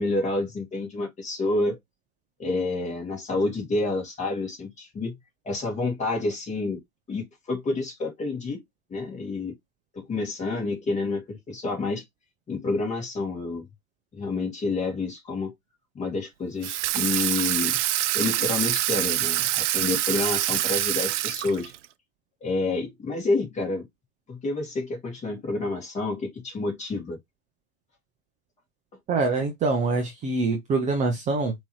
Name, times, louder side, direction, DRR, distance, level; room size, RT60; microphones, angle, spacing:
voice 1, 0.0-1.8 2.4-5.1 5.5-6.8 7.1-8.6 8.9-9.5 9.9-12.0 12.5-13.6 14.1-15.5 15.9-17.8 18.1-21.7 22.4-23.9 24.3-27.2, left 3 dB, 15° left, 2.1 m, -29 dB
Water tap faucet / Sink (filling or washing), 16.6-21.9, right 14 dB, 60° right, 0.5 m, -25 dB
voice 2, 29.1-31.5, right 3 dB, 15° right, 0.8 m, -25 dB
5.2 x 3.1 x 3.1 m
hypercardioid pair, 110°, 42 cm